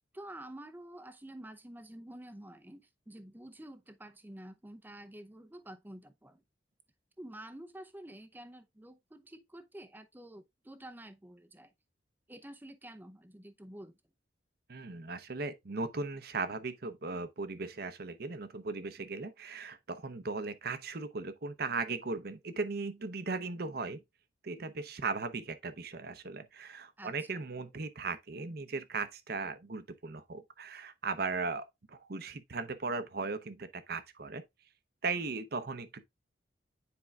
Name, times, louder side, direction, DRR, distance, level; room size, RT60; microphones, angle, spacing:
voice 1, 0.1-6.4 7.2-11.7 12.3-13.9 27.0-27.1, right 1 dB, 10° right, 0.6 m, -49 dB
voice 2, 14.7-24.0 24.4-34.4 35.0-36.0, right 4 dB, 60° right, 0.8 m, -37 dB
9.7 x 4.6 x 2.4 m
head